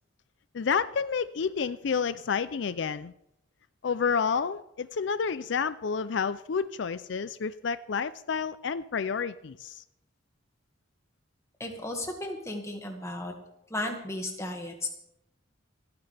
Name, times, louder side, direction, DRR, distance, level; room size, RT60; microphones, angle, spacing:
voice 1, 0.5-3.1 3.8-9.8, left 6 dB, 65° left, 14 dB, 0.4 m, -30 dB
voice 2, 11.6-13.3 13.7-14.9, left 1 dB, 15° left, 3 dB, 1.9 m, -34 dB
27.0 x 9.7 x 3.4 m, 0.81 s
head